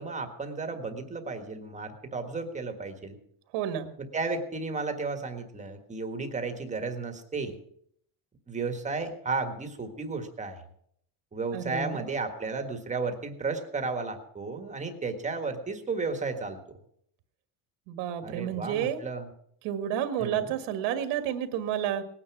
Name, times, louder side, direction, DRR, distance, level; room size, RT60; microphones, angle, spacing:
voice 1, 0.0-3.2 4.1-7.6 8.5-10.6 11.3-16.6 18.2-19.3 20.2-20.5, right 4 dB, 15° right, 6 dB, 1.5 m, -33 dB
voice 2, 3.5-3.9 11.5-12.1 17.9-19.0 19.6-22.0, right 10 dB, 80° right, 8 dB, 1.8 m, -30 dB
19.0 x 9.8 x 6.0 m, 0.68 s
cardioid pair, 155°, 43 cm